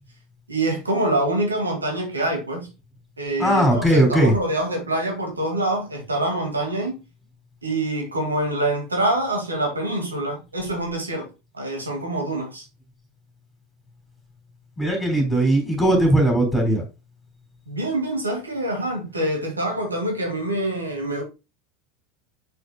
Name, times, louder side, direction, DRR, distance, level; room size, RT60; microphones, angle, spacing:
voice 1, 0.5-2.7 3.2-7.0 7.6-11.3 11.5-12.6 17.7-21.2, right 1 dB, 85° right, 2.0 m, -25 dB
voice 2, 3.4-4.3 14.8-16.8, right 1 dB, 10° left, 3.5 m, -18 dB
6.6 x 6.4 x 2.2 m
figure-of-eight pair, 80°, 0 cm